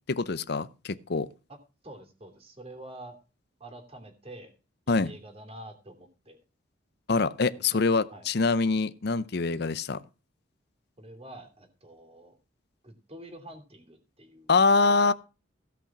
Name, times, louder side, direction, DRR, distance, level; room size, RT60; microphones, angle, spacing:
voice 1, 0.1-1.3 4.9-5.1 7.1-10.0 14.5-15.1, left 4 dB, 55° left, 0.6 m, -24 dB
voice 2, 1.8-3.2 3.6-4.5 4.9-6.4 7.6-7.8 8.1-8.3 11.0-12.4 12.8-14.5 14.8-15.1, right 1 dB, 30° right, 2.8 m, -47 dB
16.0 x 5.8 x 6.0 m
head